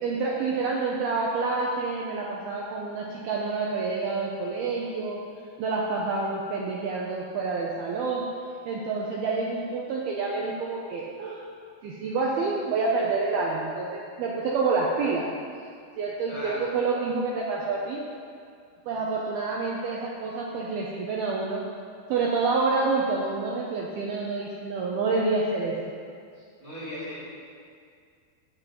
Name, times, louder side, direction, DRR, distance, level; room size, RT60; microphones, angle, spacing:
voice 1, 0.0-5.2 5.6-8.2 8.7-11.4 11.8-15.3 16.0-18.0 18.9-21.6 22.1-25.8, right 4 dB, 85° right, -2 dB, 2.2 m, -28 dB
voice 2, 16.3-16.6 26.6-27.2, left 1 dB, 30° right, -10 dB, 2.5 m, -36 dB
12.0 x 5.3 x 8.5 m, 2.2 s
omnidirectional pair, 5.6 m